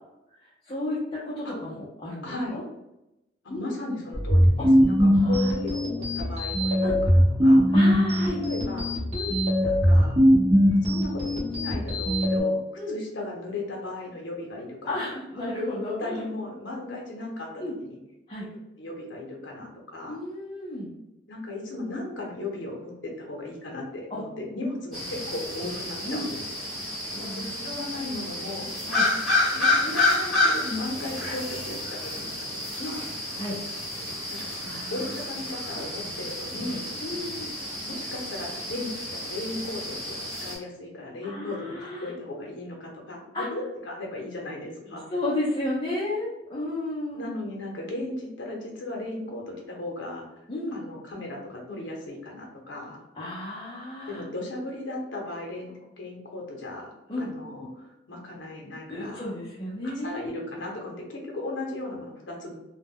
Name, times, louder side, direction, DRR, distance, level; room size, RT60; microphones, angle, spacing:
voice 1, 0.4-2.6 3.5-3.7 4.6-4.7 5.1-5.5 6.8-7.0 7.7-8.4 9.1-9.4 12.8-12.9 14.9-16.2 17.6-17.8 18.3-18.5 20.1-20.9 24.1-24.2 26.0-26.3 27.1-27.7 28.0-28.2 28.9-29.1 32.8-33.0 33.4-33.6 34.6-35.1 37.0-37.5 41.2-42.1 43.3-43.5 45.1-47.2 50.5-50.8 53.2-54.2 57.1-57.3 58.9-60.2, left 1 dB, 25° left, -9 dB, 0.5 m, -33 dB
voice 2, 2.2-2.6 3.4-7.6 8.4-9.0 9.6-10.2 10.8-12.6 12.9-15.0 16.0-18.0 18.8-20.2 21.3-26.4 27.4-28.7 29.5-33.0 34.3-34.4 34.9-36.9 37.9-45.1 47.1-50.2 50.7-53.0 54.1-55.7 56.0-59.3 60.0-62.6, left 2 dB, 75° left, -1 dB, 0.7 m, -36 dB
sound 1, 4.1-12.4, equal, 35° right, 0.7 m, -21 dB
sound 2, 24.9-40.6, left 2 dB, ahead, 1.0 m, -30 dB
2.2 x 2.1 x 3.5 m, 0.90 s
head